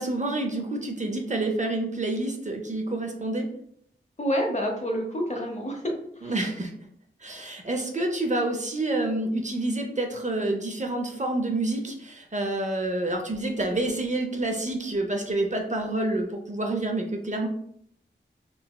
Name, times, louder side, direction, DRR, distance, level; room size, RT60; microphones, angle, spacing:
voice 1, 0.0-3.5 6.2-6.7 7.2-17.5, right 2 dB, 35° right, 2 dB, 0.5 m, -28 dB
voice 2, 4.2-6.3, equal, 35° left, 1 dB, 0.7 m, -28 dB
3.8 x 2.0 x 2.2 m, 0.69 s
wide cardioid pair, 50°, 20 cm